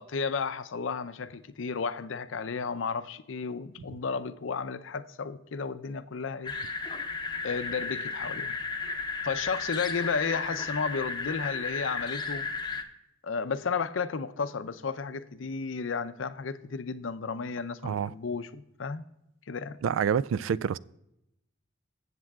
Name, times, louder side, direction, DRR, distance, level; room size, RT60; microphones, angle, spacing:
voice 1, 0.0-6.5 7.4-8.6 9.2-12.4 13.2-19.0 19.5-19.8, left 5 dB, 75° left, 0.6 m, -33 dB
sound 1, 6.4-12.8, left 4 dB, 20° left, 0.8 m, -34 dB
voice 2, 17.8-18.1 19.8-20.8, right 7 dB, 85° right, 0.3 m, -27 dB
15.0 x 7.5 x 2.4 m
head